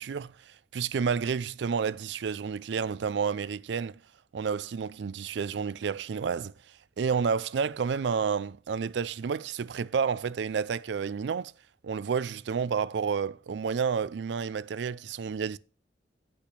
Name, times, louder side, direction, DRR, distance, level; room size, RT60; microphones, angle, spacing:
voice 1, 0.0-4.0 4.3-6.5 7.0-11.5 11.8-15.6, right 6 dB, 70° right, 0.4 m, -30 dB
8.3 x 5.8 x 6.0 m
head